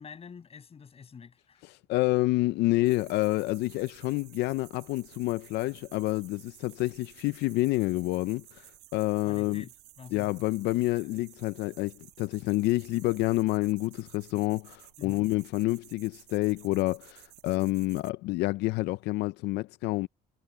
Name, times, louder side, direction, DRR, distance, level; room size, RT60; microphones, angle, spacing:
voice 1, 0.0-1.6 9.2-10.3 15.0-15.3, left 6 dB, 35° left, 6.7 m, -47 dB
voice 2, 1.6-9.6 10.1-20.1, left 19 dB, 85° left, 0.4 m, -28 dB
sound 1, 2.9-18.1, right 16 dB, 90° right, 1.6 m, -55 dB
cardioid pair, 110°, 17 cm